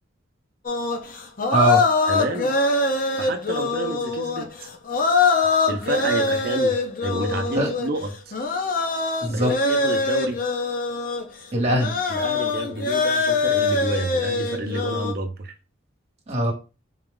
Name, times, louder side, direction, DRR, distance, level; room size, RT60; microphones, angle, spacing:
sound 1, 0.7-11.2 11.7-15.1, left 3 dB, 45° left, 0.6 m, -23 dB
voice 1, 1.5-1.8 7.6-7.7 9.2-9.6 11.5-11.9 16.3-16.5, right 1 dB, 35° right, 1.3 m, -21 dB
voice 2, 2.1-2.5 3.2-4.7 5.7-6.7 7.0-8.3 9.3-10.4 12.1-15.5, right 1 dB, 50° right, 0.6 m, -29 dB
3.9 x 2.4 x 3.7 m
head